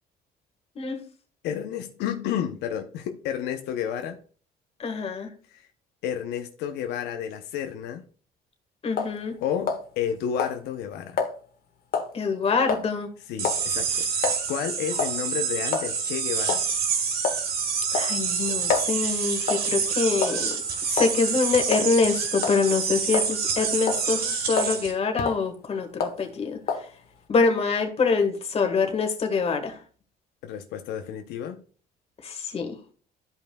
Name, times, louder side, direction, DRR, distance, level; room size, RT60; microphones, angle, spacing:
voice 1, 1.4-4.2 5.5-5.7 6.0-8.0 9.4-11.2 13.3-16.6 30.4-31.6, left 9 dB, 85° left, 0.8 m, -31 dB
voice 2, 4.8-5.3 8.8-9.4 12.1-13.1 17.9-20.5 20.9-24.2 24.5-26.6 27.3-29.8 32.2-32.8, left 4 dB, 35° left, 1.6 m, -25 dB
sound 1, 9.0-9.2 9.7-10.1 10.4-10.6 11.2-11.3 11.9-12.1 12.7-12.9 13.4-13.7 14.2-14.4 15.0-15.2 15.7-15.9 16.5-16.7 17.2-17.5 17.9-18.9 19.5-19.7 20.2-20.6 21.0-21.2 21.7-21.9 22.4-22.6 23.1-23.5 23.9-24.1 24.6-24.8 25.2-25.4 26.0-26.2 26.7-26.9, left 5 dB, 60° left, 1.5 m, -27 dB
sound 2, 13.4-24.9, right 6 dB, 65° right, 1.6 m, -27 dB
13.0 x 5.4 x 2.3 m
cardioid pair, 110°, 17 cm